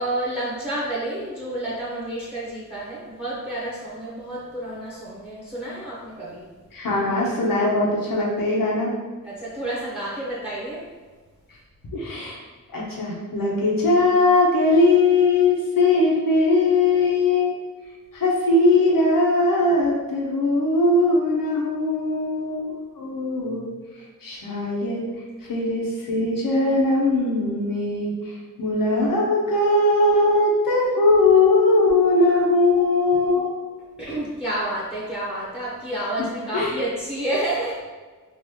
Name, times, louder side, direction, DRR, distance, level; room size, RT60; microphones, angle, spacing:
voice 1, 0.0-6.5 9.2-10.9 34.0-37.8, right 1 dB, 5° right, -5 dB, 0.9 m, -29 dB
voice 2, 6.7-8.9 11.9-12.4 12.7-17.5 18.1-23.7 24.2-25.0 25.5-33.5 36.5-36.7, left 2 dB, 90° left, -3 dB, 1.0 m, -20 dB
4.0 x 2.5 x 2.9 m, 1.4 s
wide cardioid pair, 75°, 33 cm